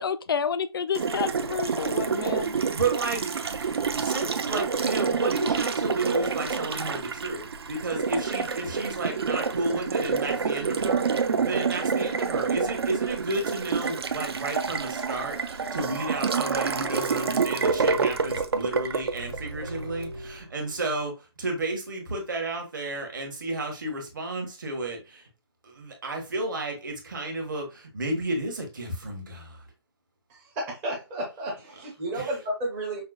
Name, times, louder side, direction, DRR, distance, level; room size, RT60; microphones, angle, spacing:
voice 1, 0.0-2.6, left 6 dB, 55° left, 0.4 m, -29 dB
Water tap faucet, 0.9-20.1, right 5 dB, 65° right, 0.5 m, -28 dB
voice 2, 2.5-3.3 3.7-25.3 25.6-29.6 32.1-32.4, right 2 dB, 45° right, 1.2 m, -32 dB
sound 1, 14.9-20.9, right 3 dB, 85° right, 1.7 m, -39 dB
voice 3, 30.3-33.0, right 1 dB, 10° right, 0.5 m, -32 dB
5.5 x 2.1 x 2.3 m
hypercardioid pair, 170°, 14 cm